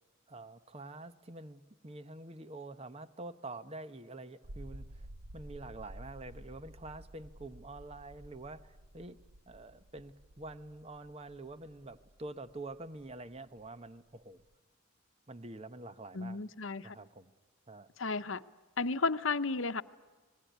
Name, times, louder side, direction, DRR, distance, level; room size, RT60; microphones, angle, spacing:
voice 1, 0.3-5.1 5.3-9.2 9.5-14.4 15.3-16.4 16.8-17.3 17.7-17.9, right 2 dB, 30° right, 12 dB, 1.0 m, -47 dB
sound 1, 4.4-14.5, right 1 dB, 85° right, 1.0 m, -52 dB
voice 2, 16.1-16.9 18.0-18.4 18.8-19.8, left 4 dB, 70° left, 12 dB, 0.9 m, -33 dB
26.5 x 20.5 x 9.3 m, 1.4 s
head